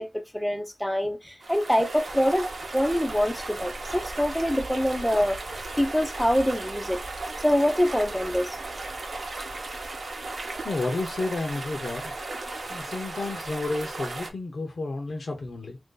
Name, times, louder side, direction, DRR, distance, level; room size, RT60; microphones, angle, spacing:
voice 1, 0.0-2.5 2.7-5.4 5.8-7.0 7.4-8.6, equal, 5° left, 0.5 m, -25 dB
sound 1, 1.4-14.3, right 2 dB, 60° right, 0.8 m, -36 dB
voice 2, 10.6-12.1 12.7-15.8, left 2 dB, 60° left, 0.7 m, -31 dB
3.0 x 2.6 x 3.7 m
wide cardioid pair, 110°, 0 cm